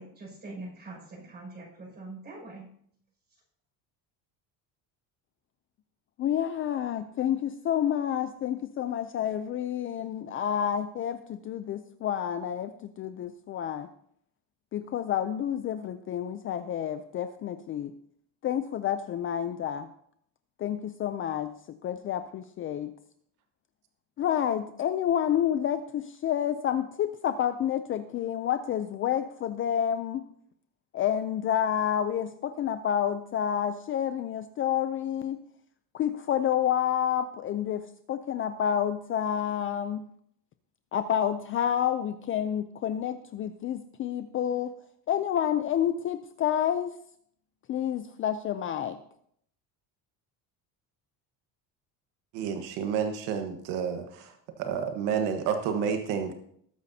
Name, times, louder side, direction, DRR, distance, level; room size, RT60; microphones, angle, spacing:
voice 1, 0.0-2.7, right 2 dB, 25° right, -1 dB, 5.9 m, -43 dB
voice 2, 6.2-13.9 14.7-17.9 18.4-19.9 20.6-21.5 21.8-22.9 24.2-30.2 30.9-35.4 35.9-40.0 40.9-44.7 45.1-46.9 47.7-49.0, left 9 dB, 30° left, 10 dB, 0.4 m, -29 dB
voice 3, 52.3-54.3 54.6-56.3, right 7 dB, 80° right, 5 dB, 1.4 m, -30 dB
20.0 x 9.4 x 2.8 m, 0.67 s
cardioid pair, 150°, 40 cm